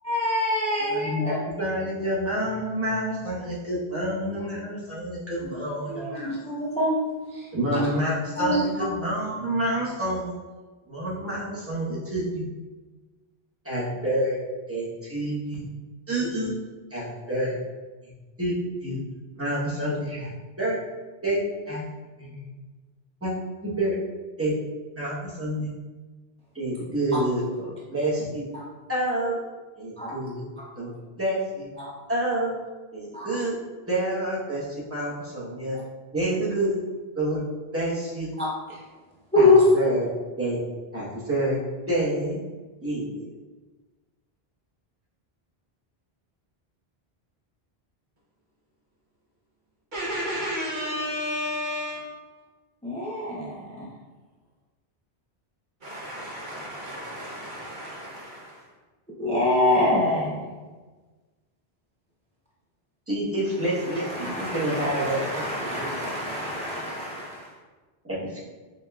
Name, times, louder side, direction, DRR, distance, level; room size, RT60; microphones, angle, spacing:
voice 1, 0.0-1.4 5.4-5.6 5.9-7.1 7.3-7.9 8.4-8.9 28.5-28.6 30.0-30.1 31.8-31.9 33.1-33.3 38.4-38.8 39.3-39.8 52.8-53.9 59.2-60.5 63.8-67.5, left 2 dB, 10° left, -5 dB, 0.4 m, -25 dB
voice 2, 0.9-6.3 7.5-10.3 10.9-12.5 13.6-14.4 14.7-15.7 16.1-16.5 16.9-17.6 18.4-19.0 19.4-20.3 20.6-20.8 21.2-21.4 21.7-21.8 22.2-22.5 23.2-23.3 23.6-24.0 24.4-24.5 24.9-25.7 26.5-28.5 28.9-29.4 29.8-30.5 30.8-31.7 32.1-32.5 32.9-33.5 33.9-35.8 36.1-36.8 37.1-37.4 37.7-38.3 39.4-40.1 40.4-40.6 40.9-41.6 41.9-42.4 42.8-43.2 63.1-65.2 65.8-66.1 68.1-68.4, right 1 dB, 15° right, -7 dB, 1.0 m, -28 dB
voice 3, 49.9-52.1 55.8-58.6, equal, 50° right, -4 dB, 1.0 m, -32 dB
5.3 x 2.8 x 2.3 m, 1.3 s
omnidirectional pair, 1.0 m